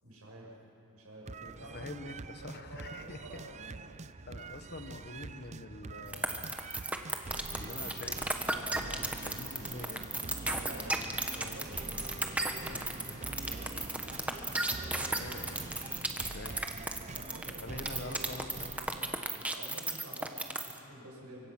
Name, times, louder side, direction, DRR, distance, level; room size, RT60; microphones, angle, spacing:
voice 1, 0.0-0.5 0.9-2.1 2.5-3.9 10.4-10.9 11.4-13.7 17.1-18.3 19.3-21.5, right 1 dB, 75° right, -2 dB, 7.0 m, -49 dB
sound 1, 1.3-19.2, right 3 dB, 30° right, 0.5 m, -46 dB
voice 2, 1.4-3.2 4.2-6.5 7.5-10.1 15.0-16.6 17.6-18.9, left 2 dB, 45° left, 8 dB, 1.2 m, -46 dB
sound 2, 6.1-20.8, right 2 dB, 5° right, 1.2 m, -34 dB
sound 3, 7.5-16.0, equal, 15° left, 2.4 m, -50 dB
24.5 x 24.5 x 6.0 m, 2.6 s
head